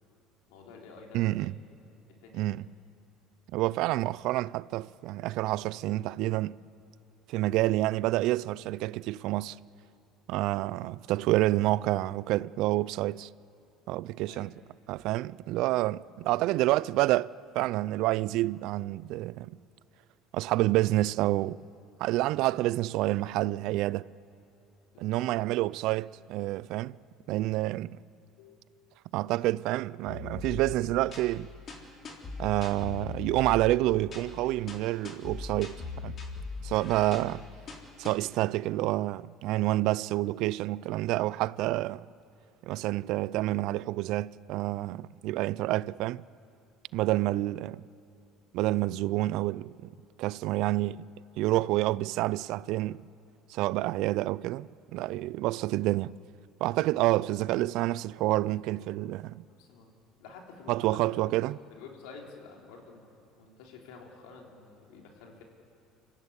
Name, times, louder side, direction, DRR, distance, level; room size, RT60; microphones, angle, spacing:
voice 1, 0.5-1.5 2.1-2.7 14.3-14.5 24.9-25.6 28.4-28.6 37.0-37.3 47.1-47.5 59.6-59.9 60.2-61.3 61.7-63.1 63.4-65.4, left 4 dB, 80° left, 3.7 m, -50 dB
voice 2, 1.1-1.5 2.3-2.6 3.5-6.6 7.3-9.6 10.3-13.3 13.9-14.5 14.9-19.6 20.3-21.6 22.0-24.1 25.0-27.0 27.3-28.0 29.1-31.5 32.4-36.2 36.6-37.4 38.0-42.1 42.6-46.2 46.9-47.8 48.5-49.9 50.2-51.0 51.4-53.0 53.5-56.2 56.6-59.4 60.7-61.5, right 17 dB, 70° right, 0.4 m, -28 dB
sound 1, 30.1-38.1, left 5 dB, 45° left, 3.8 m, -41 dB
25.5 x 15.0 x 8.3 m
supercardioid pair, 95°, 0 cm